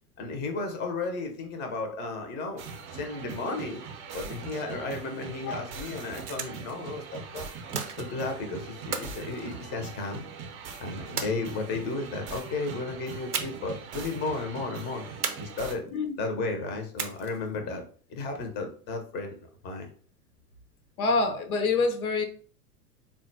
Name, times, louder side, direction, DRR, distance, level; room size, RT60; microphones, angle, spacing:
voice 1, 0.2-2.6 2.9-3.8 4.1-7.5 8.0-10.3 10.8-15.1 15.4-15.8 16.2-17.8 18.1-19.4 19.6-19.9, left 3 dB, 20° left, 0.6 m, -34 dB
sound 1, 2.6-15.8, right 5 dB, 30° right, 0.6 m, -41 dB
sound 2, 6.0-6.8 7.7-8.4 8.9-10.2 11.2-11.9 13.3-13.8 14.1-14.2 15.2-16.0 17.0-17.5, right 6 dB, 90° right, 0.6 m, -35 dB
voice 2, 21.0-22.2, left 3 dB, 70° left, 0.7 m, -26 dB
3.7 x 2.2 x 2.6 m
figure-of-eight pair, 90°, 45 cm